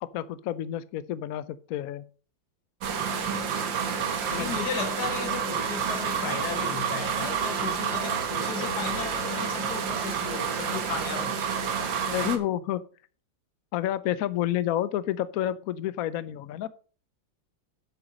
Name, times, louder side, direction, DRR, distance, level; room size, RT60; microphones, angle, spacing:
voice 1, 0.0-2.0 4.4-4.5 12.1-12.8 13.7-16.7, left 12 dB, 75° left, 0.8 m, -29 dB
sound 1, 2.8-12.4, right 7 dB, 70° right, 2.0 m, -29 dB
voice 2, 4.3-11.5, left 7 dB, 55° left, 1.7 m, -35 dB
8.0 x 7.8 x 5.3 m
omnidirectional pair, 2.1 m